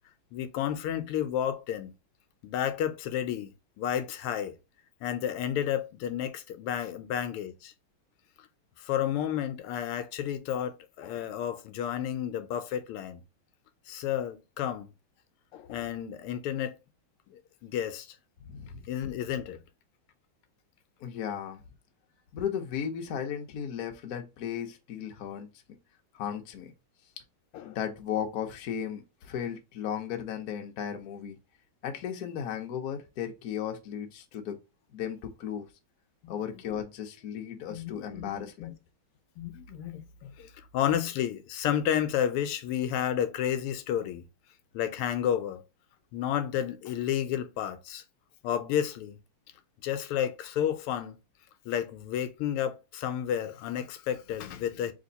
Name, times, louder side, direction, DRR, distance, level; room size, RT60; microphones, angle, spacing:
voice 1, 0.3-1.9 2.4-4.5 5.0-7.7 8.8-13.2 13.9-14.9 15.5-16.7 17.3-18.2 18.9-19.6 27.5-27.8 36.2-36.3 37.7-38.7 39.4-44.2 44.7-45.6 46.1-48.0 48.4-49.2 49.8-51.2 51.6-54.9, left 10 dB, 85° left, 1.6 m, -31 dB
voice 2, 18.5-18.9 21.0-21.6 22.3-25.5 26.1-26.7 27.6-31.4 31.8-34.6 34.9-35.6 36.3-38.7, left 8 dB, 60° left, 1.0 m, -35 dB
3.5 x 3.4 x 3.8 m
omnidirectional pair, 2.4 m